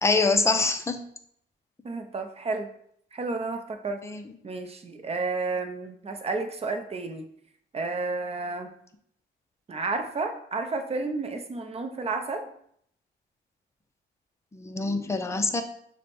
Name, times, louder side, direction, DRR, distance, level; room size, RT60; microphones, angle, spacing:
voice 1, 0.0-1.0 4.0-4.2 14.5-15.6, left 3 dB, 15° left, 6 dB, 0.5 m, -25 dB
voice 2, 1.8-2.7 3.1-4.0 4.4-7.3 7.7-8.7 9.7-12.5, right 3 dB, 30° right, 6 dB, 0.7 m, -31 dB
6.5 x 2.2 x 3.4 m, 0.68 s
cardioid pair, 90°, 20 cm